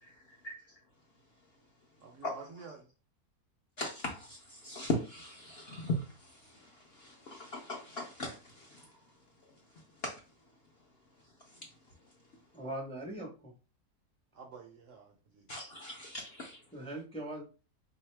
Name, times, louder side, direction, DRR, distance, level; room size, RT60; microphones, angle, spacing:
voice 1, 0.0-0.5 2.2-2.3 3.8-8.9 10.0-10.2 11.5-11.6 15.5-16.6, left 1 dB, 60° left, 0.7 m, -39 dB
voice 2, 2.0-2.9 14.3-15.5, right 5 dB, 65° right, 0.8 m, -50 dB
voice 3, 12.5-13.5 16.7-17.4, right 1 dB, 5° left, 0.5 m, -40 dB
3.7 x 2.7 x 3.2 m
omnidirectional pair, 1.7 m